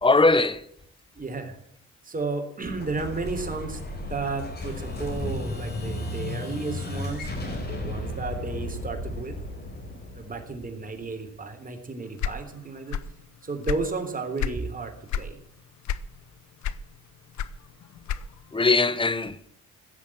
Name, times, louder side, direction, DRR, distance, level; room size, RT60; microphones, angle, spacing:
voice 1, 0.0-0.6 18.5-19.5, left 3 dB, 15° left, 1.1 m, -20 dB
voice 2, 1.2-1.6 2.0-9.4 10.1-13.0 13.4-15.4, right 3 dB, 30° right, 3.6 m, -33 dB
Explosion, 2.6-11.3, left 1 dB, 35° left, 4.7 m, -34 dB
sound 1, 12.2-13.2 13.5-14.6 15.1-15.4 15.8-16.3 16.6-18.5, left 9 dB, 70° left, 0.9 m, -30 dB
16.5 x 7.4 x 9.0 m
cardioid pair, 90°, 30 cm